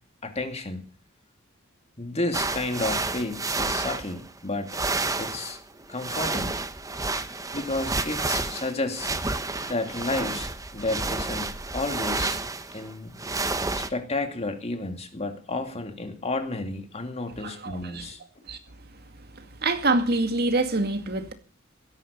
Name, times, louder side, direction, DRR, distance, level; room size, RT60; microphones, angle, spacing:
voice 1, 0.2-0.9 2.0-4.8 5.2-5.6 5.9-6.6 7.5-9.1 9.7-12.4 12.7-13.2 13.8-18.2, left 2 dB, 30° left, 2.6 m, -31 dB
sound 1, 2.3-4.4 4.7-13.9, right 3 dB, 15° right, 1.1 m, -30 dB
voice 2, 17.4-18.0 18.5-18.6 19.6-21.3, right 2 dB, 50° right, 2.2 m, -25 dB
17.0 x 13.5 x 5.4 m
head